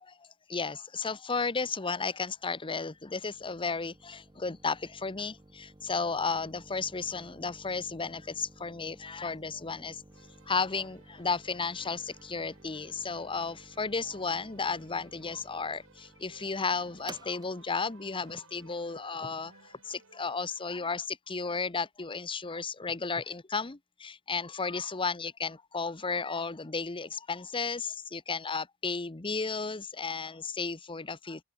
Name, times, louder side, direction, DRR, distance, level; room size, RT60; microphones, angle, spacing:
voice 1, 0.0-10.0 10.4-31.4, left 4 dB, 25° left, 0.9 m, -34 dB
sound 1, 2.1-19.6, right 2 dB, 20° right, 1.0 m, -55 dB
Keyboard (musical), 10.1-20.7, right 3 dB, 60° right, 5.1 m, -58 dB
open air
head